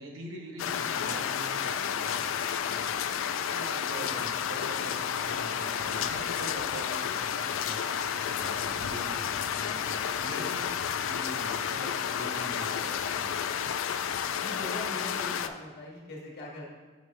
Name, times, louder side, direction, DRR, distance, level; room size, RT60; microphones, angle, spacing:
voice 1, 0.0-2.2 2.4-2.9 3.3-9.2 9.5-10.7 11.0-13.3, right 1 dB, 75° right, 1 dB, 1.1 m, -43 dB
sound 1, 0.6-15.5, left 8 dB, 75° left, 0.3 m, -31 dB
voice 2, 14.4-16.6, left 2 dB, 50° left, -2 dB, 1.2 m, -41 dB
6.3 x 5.6 x 3.4 m, 1.4 s
head